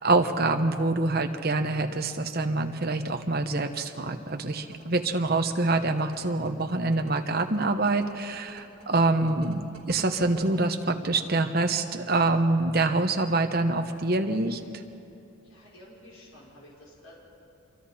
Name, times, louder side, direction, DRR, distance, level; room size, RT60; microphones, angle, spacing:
voice 1, 0.0-9.6 9.9-14.6, right 2 dB, 45° right, 5 dB, 1.1 m, -25 dB
sound 1, 4.6-10.5, right 3 dB, 65° right, 3.0 m, -49 dB
voice 2, 15.4-17.2, left 1 dB, 70° left, -6 dB, 5.2 m, -51 dB
26.5 x 23.5 x 4.3 m, 2.7 s
head